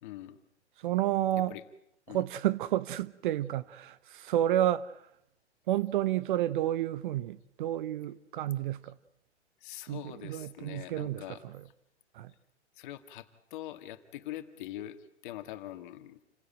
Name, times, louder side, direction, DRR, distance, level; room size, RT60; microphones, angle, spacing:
voice 1, 0.0-0.4 1.5-1.6 2.1-2.2 9.6-11.4 12.8-16.2, left 13 dB, 45° left, 2.2 m, -43 dB
voice 2, 0.8-1.6 2.1-5.1 5.7-8.9 9.9-11.6 12.1-12.3, right 13 dB, 45° right, 0.9 m, -31 dB
29.0 x 16.5 x 9.0 m
hypercardioid pair, 120°, 35 cm